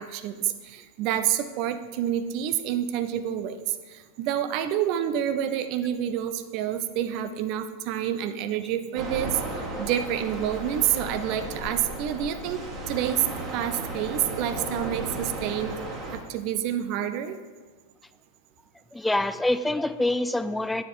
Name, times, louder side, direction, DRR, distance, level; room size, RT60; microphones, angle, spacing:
voice 1, 0.0-13.3 13.5-15.8 16.1-17.4, right 10 dB, 40° right, 10 dB, 0.6 m, -28 dB
sound 1, 8.9-16.2, right 2 dB, 20° right, 1.8 m, -35 dB
voice 2, 18.9-20.8, left 1 dB, 5° left, 12 dB, 0.4 m, -26 dB
9.6 x 6.4 x 4.7 m, 1.4 s
figure-of-eight pair, 90°, 0 cm